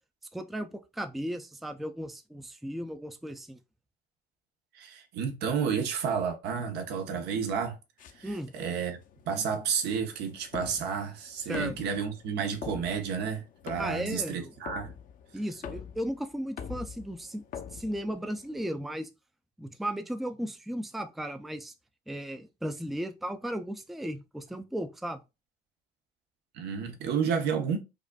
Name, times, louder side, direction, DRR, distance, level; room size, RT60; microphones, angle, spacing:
voice 1, 0.3-3.6 8.2-8.5 11.5-11.8 13.8-14.5 15.3-17.4 17.7-19.1 19.6-21.7 22.1-25.2, equal, ahead, 0.4 m, -35 dB
voice 2, 4.7-7.8 8.2-9.0 9.3-14.9 26.5-27.8, right 6 dB, 75° right, 0.8 m, -31 dB
sound 1, 8.0-18.7, left 8 dB, 55° left, 0.6 m, -45 dB
4.9 x 2.5 x 2.3 m
cardioid pair, 110°, 17 cm